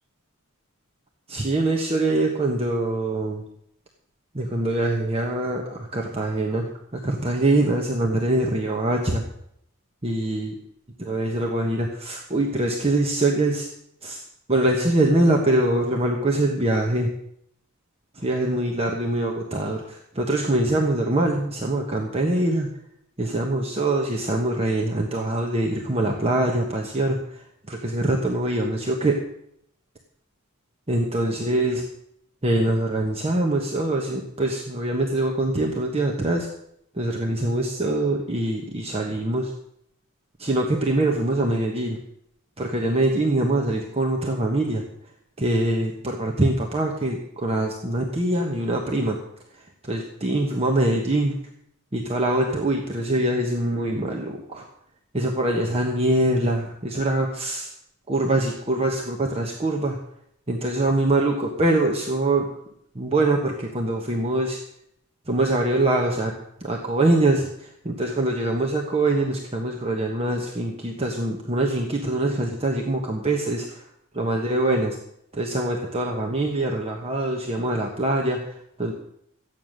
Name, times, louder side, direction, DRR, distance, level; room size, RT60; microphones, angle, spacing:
voice 1, 1.3-3.4 4.3-9.2 10.0-10.5 11.0-13.7 14.0-14.2 14.5-17.1 18.1-22.7 23.2-29.2 30.9-31.8 32.4-36.5 36.9-39.5 40.4-42.0 42.6-44.8 45.4-49.2 49.5-51.4 51.9-54.6 55.1-57.7 58.1-60.0 60.5-62.5 62.9-64.6 65.3-66.3 66.6-73.8 74.1-75.0 75.3-78.9, right 1 dB, 25° right, 1 dB, 1.3 m, -24 dB
14.0 x 9.3 x 6.5 m, 0.74 s
head